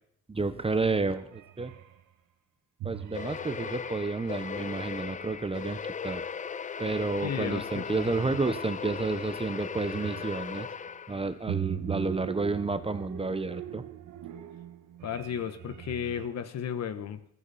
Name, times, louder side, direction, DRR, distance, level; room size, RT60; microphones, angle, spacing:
voice 1, 0.3-1.7 2.8-6.2 6.8-10.7 11.1-13.8, right 3 dB, 20° right, 11 dB, 1.0 m, -30 dB
sound 1, 1.1-2.0 2.8-5.4 7.1-7.4 7.7-10.7 11.5-16.3, right 11 dB, 75° right, 1.3 m, -41 dB
sound 2, 3.1-11.4, left 6 dB, 25° left, 0.5 m, -38 dB
voice 2, 7.2-8.0 15.0-17.2, left 8 dB, 60° left, 12 dB, 1.3 m, -34 dB
14.5 x 14.0 x 4.2 m, 0.71 s
cardioid pair, 90°, 30 cm